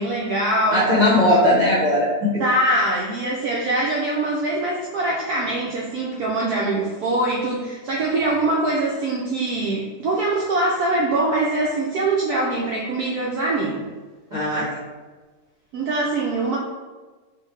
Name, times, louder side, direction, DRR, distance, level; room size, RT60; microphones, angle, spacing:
voice 1, 0.0-0.9 2.4-13.9 15.7-16.6, right 2 dB, 75° right, -3 dB, 0.8 m, -23 dB
voice 2, 0.7-2.4 14.3-14.8, left 1 dB, 40° right, -9 dB, 0.6 m, -18 dB
4.6 x 2.4 x 3.2 m, 1.3 s
omnidirectional pair, 2.1 m